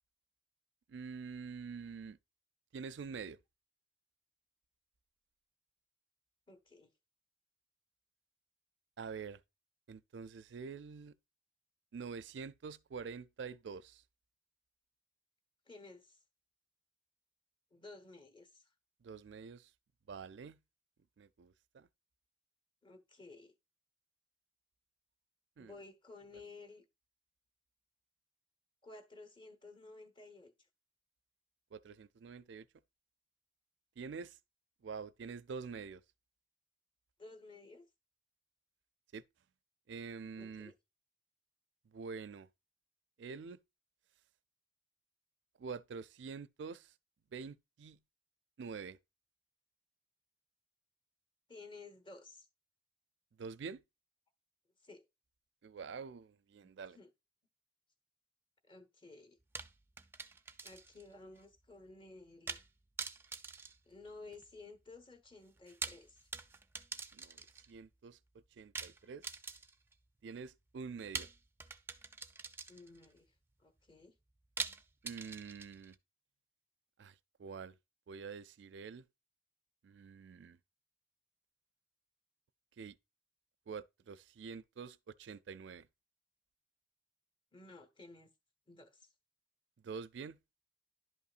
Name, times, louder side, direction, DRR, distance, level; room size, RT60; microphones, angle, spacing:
voice 1, 0.9-2.2 2.7-3.4 9.0-9.4 9.9-11.1 11.9-14.0 19.0-19.7 20.1-20.6 21.2-21.9 25.6-25.7 31.7-32.7 34.0-34.4 34.8-36.0 39.1-39.2 39.9-40.7 41.9-42.5 43.2-43.6 45.6-46.9 47.3-48.0 48.6-49.0 53.4-53.8 55.6-57.0 67.1-68.2 68.5-69.2 70.2-71.3 75.0-76.0 77.0-77.1 77.4-77.7 78.1-79.1 79.8-80.6 82.8-83.0 83.7-85.9 89.8-90.4, right 5 dB, 80° right, 0.4 m, -46 dB
voice 2, 6.5-6.9 15.7-16.2 17.7-18.7 22.8-23.5 25.6-26.8 28.8-30.5 37.2-37.9 40.4-40.7 51.5-52.5 54.8-55.0 56.9-57.1 58.6-59.4 60.6-62.6 63.9-66.3 72.7-73.3 73.6-74.1 87.5-88.3 88.7-89.1, left 3 dB, 25° left, 1.0 m, -54 dB
sound 1, 59.5-61.1 61.4-61.5 62.5-62.7 63.0-64.5 65.6-67.7 68.7-69.9 71.1-73.1 74.6-76.0, right 4 dB, 10° right, 0.4 m, -44 dB
11.0 x 5.5 x 2.4 m
head